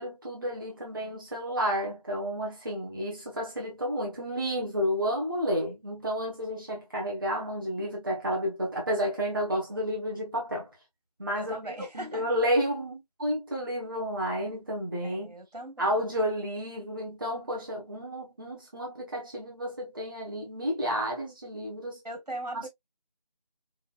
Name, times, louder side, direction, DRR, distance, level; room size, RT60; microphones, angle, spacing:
voice 1, 0.0-10.7 11.2-15.3 15.8-22.0 22.5-22.7, equal, 30° right, 1.1 m, -31 dB
voice 2, 11.3-12.2 15.0-15.9 22.0-22.7, right 1 dB, 80° right, 2.1 m, -39 dB
5.3 x 2.3 x 2.4 m
figure-of-eight pair, 165°, 21 cm